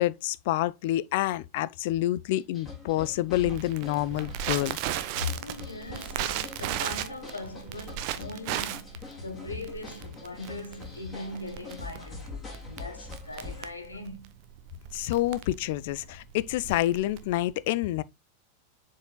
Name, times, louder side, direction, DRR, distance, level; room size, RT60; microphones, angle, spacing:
voice 1, 0.0-4.8 14.9-18.0, left 15 dB, 50° left, 0.4 m, -28 dB
sound 1, 2.3-13.7, left 3 dB, 20° left, 4.2 m, -45 dB
Crackle, 3.3-17.5, right 11 dB, 45° right, 0.7 m, -36 dB
voice 2, 5.1-14.3, left 3 dB, 80° left, 1.4 m, -39 dB
7.4 x 5.6 x 2.2 m
figure-of-eight pair, 90°, 0 cm